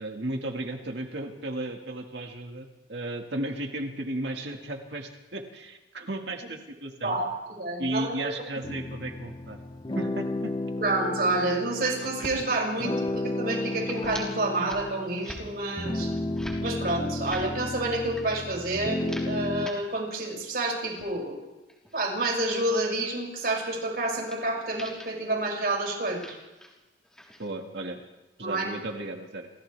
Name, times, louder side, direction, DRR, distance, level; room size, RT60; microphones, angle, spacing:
voice 1, 0.0-7.2 7.8-9.6 10.0-10.5 27.4-28.0 28.4-29.5, right 1 dB, 80° right, 3 dB, 1.9 m, -34 dB
voice 2, 7.6-8.3 10.8-16.1 16.6-21.4 21.9-26.3 28.4-28.7, right 2 dB, 55° right, -1 dB, 6.6 m, -29 dB
sound 1, 8.6-19.7, left 2 dB, 25° left, 0.8 m, -33 dB
sound 2, 11.8-12.4 12.7-13.2 13.5-14.3 14.5-14.8 15.1-15.4 15.9-16.6 17.1-17.5 18.0-18.4 18.8-19.8 20.2-21.1 21.6-22.6 23.4-23.6 24.3-24.4 24.7-25.2 25.8-26.8 27.0-27.5, equal, 5° left, 3.8 m, -45 dB
29.0 x 27.0 x 3.4 m, 1.1 s
head